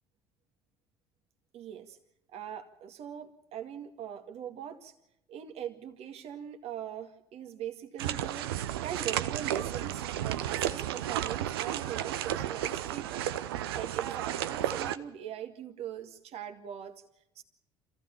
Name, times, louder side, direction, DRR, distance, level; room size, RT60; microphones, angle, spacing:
voice 1, 1.5-2.0 2.3-4.9 5.3-8.5 8.8-13.2 13.7-16.9 17.4-17.5, right 9 dB, 55° right, 7 dB, 2.0 m, -41 dB
sound 1, 8.0-15.0, right 12 dB, 75° right, 0.8 m, -33 dB
26.5 x 15.0 x 7.1 m, 0.83 s
figure-of-eight pair, 60°, 13 cm